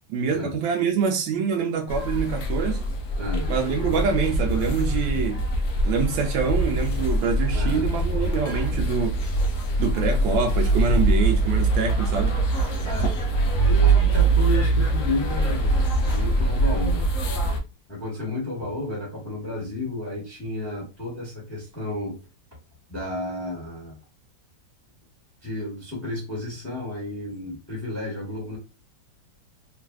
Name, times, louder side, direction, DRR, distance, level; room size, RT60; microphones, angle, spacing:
voice 1, 0.1-2.8 3.5-5.4 5.8-9.2 9.8-12.4, right 5 dB, 90° right, 1.3 m, -25 dB
sound 1, 1.9-17.6, right 2 dB, 70° left, 0.7 m, -23 dB
voice 2, 3.2-3.5 7.5-7.9 12.8-17.1 17.9-22.2 22.9-24.0 25.4-28.6, left 1 dB, 10° left, 0.9 m, -32 dB
3.2 x 2.5 x 2.3 m
omnidirectional pair, 2.1 m